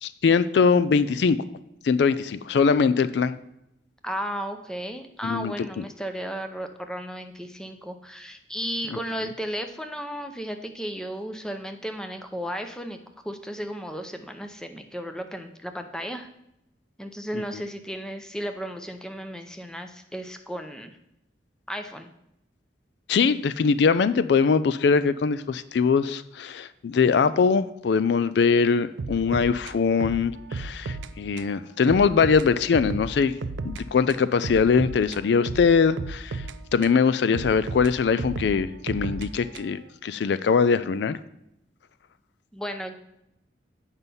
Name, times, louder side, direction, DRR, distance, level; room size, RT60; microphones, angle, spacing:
voice 1, 0.0-1.4 1.8-3.4 5.2-5.7 8.9-9.0 17.3-17.4 23.1-33.3 33.6-36.4 36.7-41.2, left 5 dB, 70° left, 14 dB, 0.3 m, -22 dB
voice 2, 4.0-13.0 13.2-16.3 17.0-21.0 21.7-22.1 42.5-43.0, equal, 5° left, 6 dB, 0.5 m, -34 dB
sound 1, 29.0-31.1 31.4-31.5 31.9-33.8 34.1-37.0 37.3-39.9, right 3 dB, 90° right, 0.5 m, -34 dB
8.0 x 5.6 x 5.4 m, 0.82 s
head